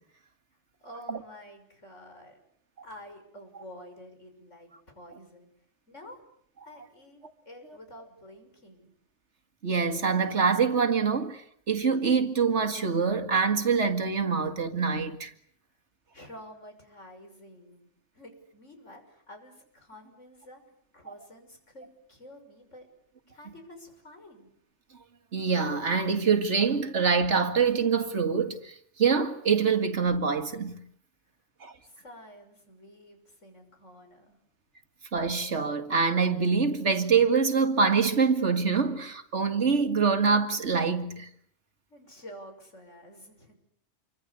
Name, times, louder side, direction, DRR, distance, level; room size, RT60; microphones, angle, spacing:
voice 1, 0.8-2.4 2.8-5.5 5.9-6.2 6.7-8.9 16.1-17.9 18.1-20.6 20.9-22.9 23.2-24.5 31.8-34.4 41.9-43.6, equal, 90° left, 6.8 m, -49 dB
voice 2, 9.6-15.3 25.3-30.8 31.6-31.7 35.1-41.3, right 5 dB, 70° right, 2.3 m, -25 dB
28.5 x 24.5 x 8.4 m
omnidirectional pair, 1.2 m